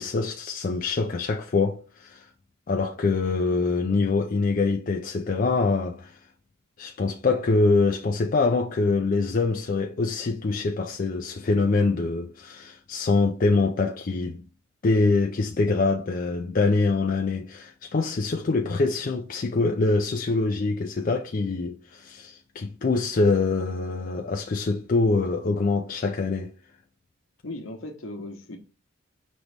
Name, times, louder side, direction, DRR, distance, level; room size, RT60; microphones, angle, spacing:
voice 1, 0.0-2.3 2.7-6.2 6.8-14.4 14.8-26.5, left 3 dB, 40° left, 0.4 m, -24 dB
voice 2, 27.4-28.6, left 2 dB, 70° left, 0.9 m, -37 dB
5.3 x 3.0 x 3.3 m
head